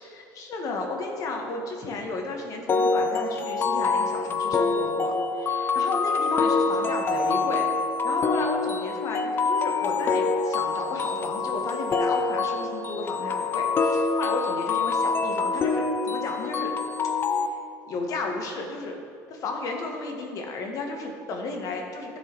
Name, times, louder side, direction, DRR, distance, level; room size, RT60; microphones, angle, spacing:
voice 1, 0.1-7.7 8.0-16.7 17.3-17.5 17.9-19.0 19.3-22.2, left 3 dB, 50° left, 2 dB, 1.3 m, -33 dB
sound 1, 2.7-17.5, left 4 dB, 30° left, 0.5 m, -25 dB
13.0 x 4.7 x 4.4 m, 2.4 s
cardioid pair, 130°, 8 cm